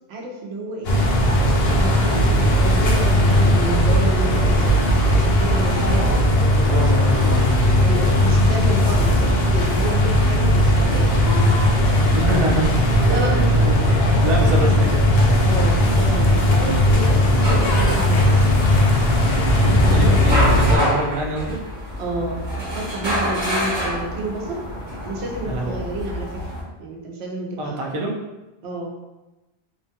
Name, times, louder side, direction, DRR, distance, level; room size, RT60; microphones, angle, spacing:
voice 1, 0.1-1.0 1.3-6.3 7.8-11.2 13.0-13.6 14.4-14.9 15.4-18.3 19.6-20.9 22.0-24.6 25.1-26.4 26.8-27.9 28.6-28.9, right 2 dB, 80° right, -1 dB, 0.9 m, -30 dB
sound 1, 0.8-20.8, left 1 dB, 75° left, 0.8 m, -17 dB
voice 2, 6.7-7.4 12.1-12.8 13.1-15.0 16.6-16.8 19.9-21.6 25.4-25.8 27.6-28.1, right 1 dB, 45° right, -2 dB, 0.4 m, -26 dB
sound 2, 16.8-26.6, equal, 25° right, 1.0 m, -28 dB
2.8 x 2.3 x 2.7 m, 1.0 s
omnidirectional pair, 1.1 m